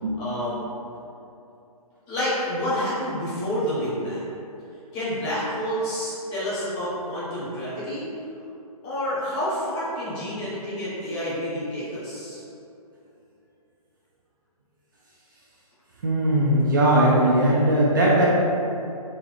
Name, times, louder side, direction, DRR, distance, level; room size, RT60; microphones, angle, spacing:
voice 1, 0.2-0.6 2.1-4.3 4.9-8.0 8.8-12.4, equal, 15° left, -10 dB, 0.9 m, -28 dB
voice 2, 16.0-18.3, right 1 dB, 35° right, -5 dB, 0.4 m, -19 dB
3.8 x 2.8 x 3.3 m, 2.7 s
hypercardioid pair, 165°, 19 cm